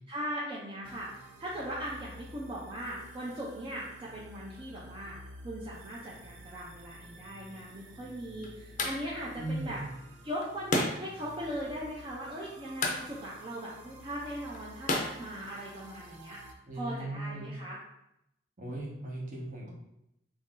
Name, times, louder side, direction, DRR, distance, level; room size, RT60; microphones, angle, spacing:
voice 1, 0.1-9.8 10.2-16.4 16.7-17.8, equal, 25° right, -6 dB, 0.5 m, -39 dB
sound 1, 0.8-16.5, right 1 dB, 80° right, 0.4 m, -51 dB
sound 2, 7.6-16.1, left 2 dB, 45° left, 0.5 m, -37 dB
voice 2, 9.4-9.8 16.7-17.5 18.6-19.7, right 2 dB, 45° right, -2 dB, 0.9 m, -37 dB
3.1 x 2.6 x 3.7 m, 0.83 s
head